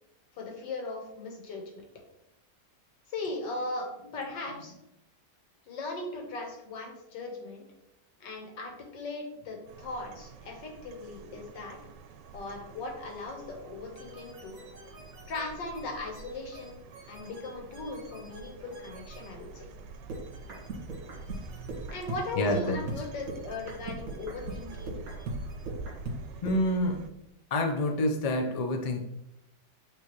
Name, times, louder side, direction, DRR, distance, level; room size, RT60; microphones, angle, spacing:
voice 1, 0.3-1.8 3.1-3.9 4.1-4.7 5.7-7.7 8.2-11.8 12.3-14.6 15.3-19.7 21.9-25.0, left 3 dB, 90° left, 2 dB, 1.9 m, -38 dB
sound 1, 9.7-27.1, right 4 dB, 85° right, 1.2 m, -46 dB
sound 2, 13.9-19.3 20.1-26.7, right 2 dB, 55° right, 1.9 m, -42 dB
voice 2, 22.4-22.8 26.4-27.1 27.5-29.0, left 1 dB, 45° left, 2 dB, 0.4 m, -27 dB
8.3 x 3.6 x 3.1 m, 0.86 s
omnidirectional pair, 1.9 m